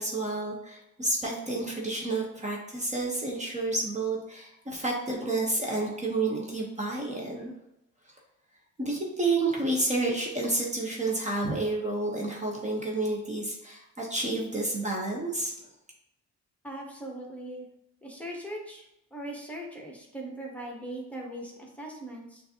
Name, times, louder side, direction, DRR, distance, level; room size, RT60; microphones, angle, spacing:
voice 1, 0.0-7.5 8.8-15.5, right 2 dB, 25° right, -1 dB, 0.9 m, -30 dB
voice 2, 16.6-17.7 18.0-18.8 19.1-22.4, right 1 dB, 5° left, -1 dB, 1.1 m, -39 dB
6.4 x 2.7 x 2.8 m, 0.86 s
cardioid pair, 90°, 30 cm